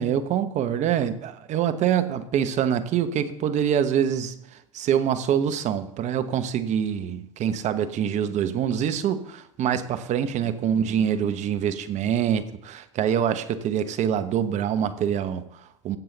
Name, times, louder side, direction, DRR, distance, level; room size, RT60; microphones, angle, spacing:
voice 1, 0.0-16.0, right 9 dB, 45° right, 10 dB, 1.1 m, -25 dB
16.0 x 7.7 x 4.2 m, 0.77 s
hypercardioid pair, 75°, 16 cm